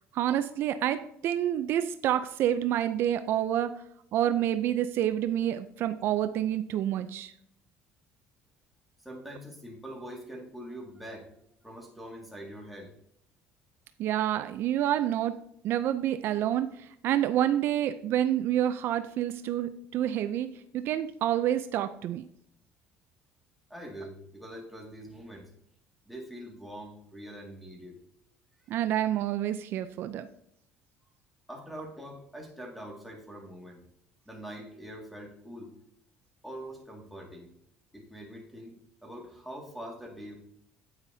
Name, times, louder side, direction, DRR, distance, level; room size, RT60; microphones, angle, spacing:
voice 1, 0.1-3.8 4.1-7.3 14.0-15.4 15.6-22.2 28.7-30.3, right 11 dB, 60° right, 10 dB, 0.4 m, -28 dB
voice 2, 9.0-12.9 23.7-25.5 26.1-28.0 31.5-33.8 34.3-35.7 36.4-37.5 37.9-38.7 39.0-40.4, equal, ahead, -1 dB, 2.0 m, -44 dB
9.6 x 8.9 x 2.7 m, 0.71 s
cardioid pair, 130°, 4 cm